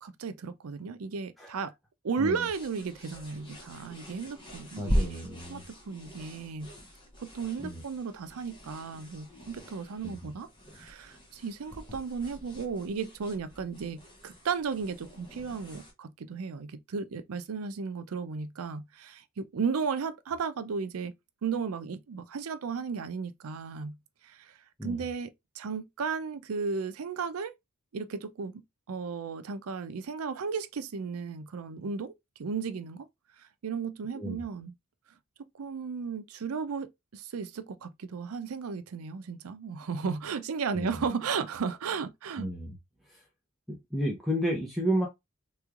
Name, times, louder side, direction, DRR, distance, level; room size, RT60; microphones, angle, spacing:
voice 1, 0.0-1.7 2.0-6.7 7.2-10.5 10.8-21.1 21.4-24.0 24.2-24.5 24.8-25.3 25.6-27.5 27.9-28.6 28.9-33.1 33.6-34.7 35.6-42.5, right 5 dB, 85° right, 0.5 m, -35 dB
sound 1, 2.4-15.9, equal, 25° left, 1.3 m, -39 dB
voice 2, 4.8-5.6 7.6-7.8 10.0-10.3 24.8-25.0 34.1-34.4 40.7-41.1 42.4-42.8 43.1-43.2 43.7-45.1, equal, ahead, 0.7 m, -32 dB
3.5 x 3.1 x 2.4 m
head